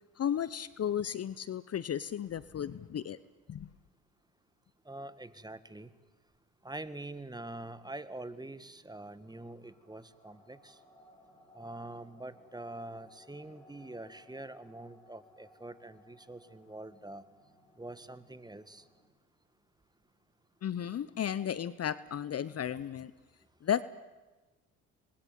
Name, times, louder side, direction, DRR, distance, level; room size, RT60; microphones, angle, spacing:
voice 1, 0.2-3.2 3.5-3.7 20.6-23.1 23.6-23.8, left 9 dB, 40° left, 18 dB, 0.9 m, -34 dB
voice 2, 4.8-5.9 6.6-10.7 11.5-17.2 17.8-18.8, right 2 dB, 10° right, 14 dB, 1.7 m, -45 dB
sound 1, 7.7-19.1, left 1 dB, 10° left, 7.8 m, -62 dB
26.5 x 21.5 x 9.1 m, 1.2 s
hypercardioid pair, 60°, 37 cm